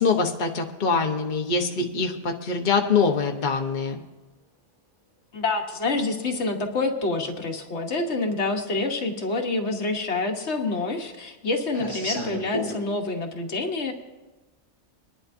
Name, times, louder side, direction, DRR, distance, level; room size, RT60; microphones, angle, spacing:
voice 1, 0.0-3.9, left 5 dB, 45° left, 3 dB, 1.0 m, -24 dB
voice 2, 5.3-13.9, left 3 dB, 70° left, 4 dB, 1.4 m, -27 dB
sound 1, 6.2-6.3 7.6-7.7 8.2-8.3 8.5-9.2 9.5-12.8, equal, 30° right, 5.6 m, -34 dB
23.5 x 11.0 x 2.6 m, 1.2 s
omnidirectional pair, 1.2 m